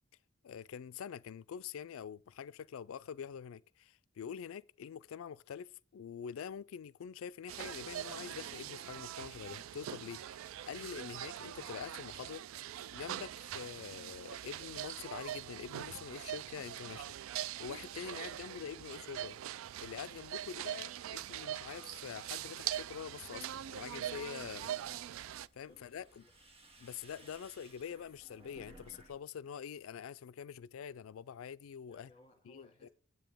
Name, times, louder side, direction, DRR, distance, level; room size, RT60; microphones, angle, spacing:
voice 1, 0.4-12.4 12.9-17.2 17.6-19.4 19.8-24.8 25.5-26.2 26.8-32.1 32.5-32.9, left 7 dB, 90° left, 0.4 m, -45 dB
sound 1, 7.5-25.5, right 11 dB, 80° right, 0.3 m, -43 dB
sound 2, 24.5-29.2 29.5-30.1, right 2 dB, 30° right, 1.9 m, -60 dB
voice 2, 25.6-26.3 31.9-32.9, left 1 dB, 30° left, 2.2 m, -64 dB
9.1 x 8.1 x 3.5 m
head